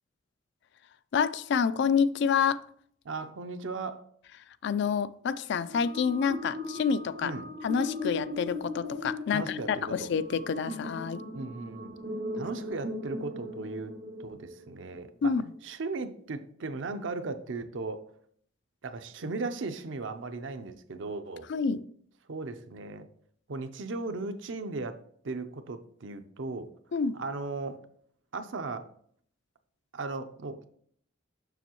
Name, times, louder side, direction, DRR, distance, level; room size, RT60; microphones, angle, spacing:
voice 1, 1.1-2.6 4.6-7.3 7.6-11.2 15.2-15.4 21.5-21.8 26.9-27.2, left 6 dB, 65° left, 14 dB, 0.3 m, -28 dB
voice 2, 3.0-4.0 7.2-7.5 9.3-10.1 11.3-11.9 12.3-13.9 14.2-15.3 15.6-18.1 18.8-21.5 22.3-23.1 23.5-26.7 27.1-27.8 28.3-28.9 29.9-30.7, right 3 dB, 70° right, 8 dB, 0.6 m, -37 dB
sound 1, 5.6-14.9, left 2 dB, 85° right, 2.2 m, -38 dB
6.9 x 6.2 x 3.0 m, 0.62 s
head